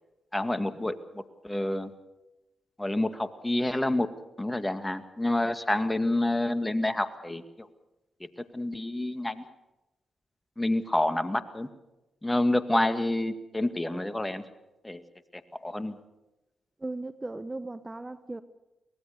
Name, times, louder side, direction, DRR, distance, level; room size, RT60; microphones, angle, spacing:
voice 1, 0.3-1.9 2.8-4.1 4.4-7.7 8.4-9.4 10.6-11.7 12.2-14.4 14.8-15.0 15.3-16.0, left 1 dB, 15° left, 2.1 m, -28 dB
voice 2, 16.8-18.4, right 2 dB, 25° right, 1.2 m, -37 dB
23.5 x 19.5 x 6.9 m
hypercardioid pair, 40°, 0 cm